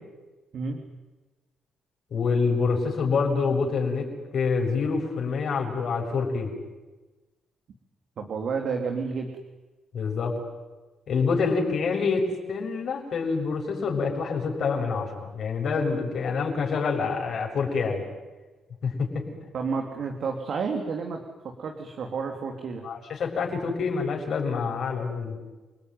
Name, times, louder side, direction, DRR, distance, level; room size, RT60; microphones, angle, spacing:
voice 1, 2.1-6.5 9.9-10.3 11.1-18.1 18.8-19.3 22.8-25.4, left 5 dB, 60° left, 1 dB, 7.4 m, -26 dB
voice 2, 8.2-9.3 19.5-21.2 21.6-22.8, right 5 dB, 60° right, 3 dB, 3.2 m, -30 dB
30.0 x 20.0 x 9.7 m, 1.2 s
cardioid pair, 90°, 0 cm